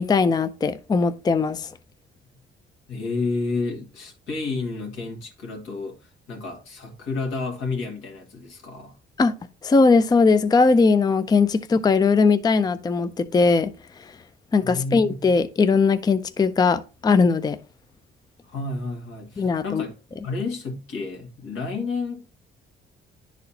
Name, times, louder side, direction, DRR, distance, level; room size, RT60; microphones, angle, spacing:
voice 1, 0.0-1.7 9.2-9.3 9.6-13.7 14.5-17.6 19.4-19.8, left 4 dB, 20° left, 0.4 m, -19 dB
voice 2, 2.9-9.0 14.6-15.2 18.4-19.9 20.2-22.3, left 3 dB, 90° left, 2.0 m, -31 dB
10.5 x 4.2 x 2.8 m
cardioid pair, 90°, 20 cm